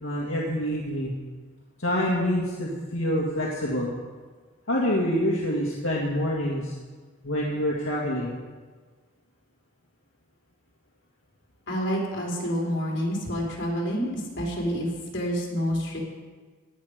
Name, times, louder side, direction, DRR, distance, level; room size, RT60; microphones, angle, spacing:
voice 1, 0.0-1.1 1.8-3.9 4.7-6.7 7.2-8.4, equal, 75° left, -4 dB, 2.1 m, -26 dB
voice 2, 11.7-16.0, equal, 60° left, -3 dB, 3.9 m, -28 dB
17.5 x 9.6 x 5.1 m, 1.4 s
head